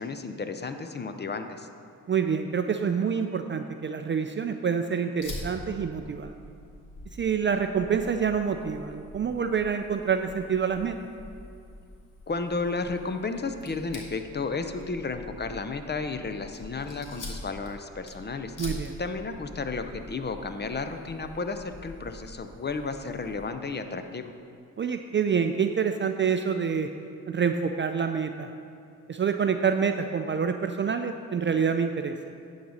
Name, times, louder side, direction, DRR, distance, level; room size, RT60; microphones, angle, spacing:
voice 1, 0.0-1.7 12.3-18.6 19.0-24.3, left 4 dB, 30° left, 8 dB, 0.7 m, -33 dB
voice 2, 2.1-6.4 7.2-11.0 18.6-19.0 24.8-26.9 27.3-28.5 29.1-32.2, right 6 dB, 35° right, 7 dB, 0.4 m, -27 dB
Fire, 5.2-23.5, left 1 dB, 60° left, 1.8 m, -45 dB
10.0 x 4.1 x 6.4 m, 2.4 s
cardioid pair, 60°, 35 cm